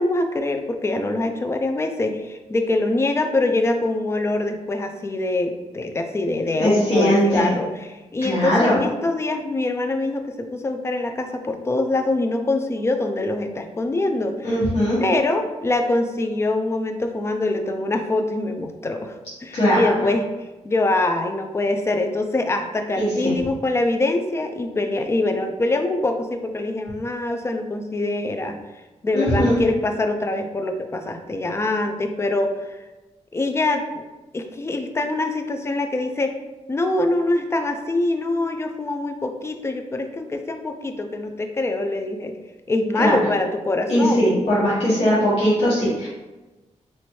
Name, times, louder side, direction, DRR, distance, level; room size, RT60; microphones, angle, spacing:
voice 1, 0.0-14.6 15.0-19.1 19.4-20.3 20.6-28.6 29.0-32.8 33.3-34.0 34.3-36.4 36.7-42.3 42.7-44.3, left 2 dB, 20° left, 5 dB, 0.4 m, -24 dB
voice 2, 6.6-7.5 8.2-8.8 14.4-15.0 19.5-19.8 23.0-23.3 29.1-29.6 43.0-43.2 43.9-46.1, equal, 50° left, -10 dB, 1.4 m, -19 dB
4.2 x 3.1 x 3.1 m, 1.1 s
wide cardioid pair, 160°, 12 cm